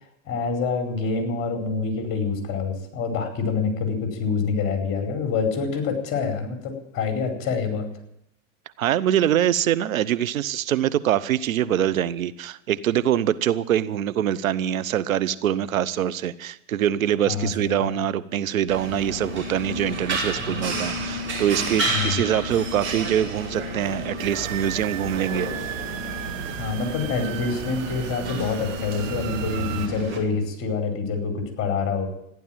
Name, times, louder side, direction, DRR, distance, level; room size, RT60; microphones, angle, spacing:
voice 1, 0.3-7.9 17.3-18.0 20.4-20.7 21.9-22.2 26.6-32.1, left 4 dB, 30° left, 5 dB, 4.9 m, -26 dB
voice 2, 8.8-25.5, right 10 dB, 90° right, 16 dB, 1.0 m, -24 dB
sound 1, 18.7-30.2, right 1 dB, 30° right, 5.3 m, -31 dB
sound 2, 24.2-29.9, right 11 dB, 70° right, 1.3 m, -34 dB
14.5 x 11.0 x 8.9 m, 0.76 s
hypercardioid pair, 125°, 40 cm